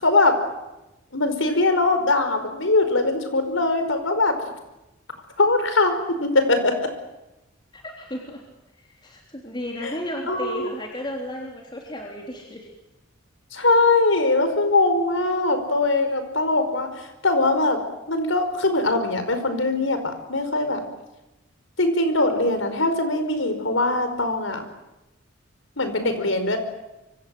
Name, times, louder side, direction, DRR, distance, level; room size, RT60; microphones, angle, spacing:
voice 1, 0.0-0.3 1.1-4.3 5.4-5.9 6.2-6.9 9.8-9.9 10.3-10.7 13.5-16.9 17.2-17.8 18.1-20.8 21.8-24.6 25.8-26.6, left 2 dB, 75° left, 9 dB, 5.1 m, -21 dB
voice 2, 7.7-8.4 8.8-12.7, left 1 dB, 25° left, 0 dB, 3.5 m, -34 dB
26.5 x 24.5 x 7.9 m, 0.96 s
head